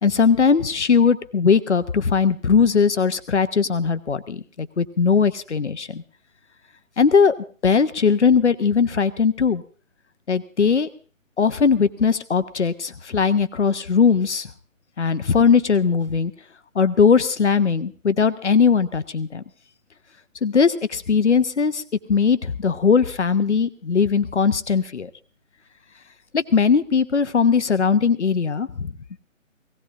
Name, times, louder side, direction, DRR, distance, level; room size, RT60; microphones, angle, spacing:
voice 1, 0.0-6.0 7.0-7.3 7.6-9.6 10.3-10.9 11.4-14.5 15.0-16.3 16.7-19.4 20.4-21.8 22.1-25.1 26.3-28.9, left 5 dB, 60° left, 12 dB, 1.0 m, -19 dB
17.5 x 16.5 x 3.8 m, 0.39 s
figure-of-eight pair, 155°, 40 cm